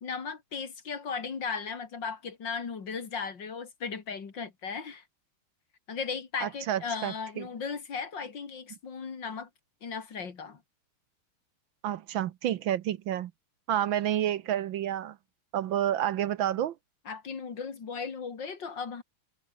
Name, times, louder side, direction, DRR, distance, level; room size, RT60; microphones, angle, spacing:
voice 1, 0.0-5.0 5.9-9.5 9.8-10.6 17.1-19.0, left 5 dB, 55° left, 3.0 m, -36 dB
voice 2, 6.4-7.5 11.8-13.3 13.7-15.2 15.5-16.7, right 11 dB, 70° right, 1.5 m, -29 dB
omnidirectional pair, 2.4 m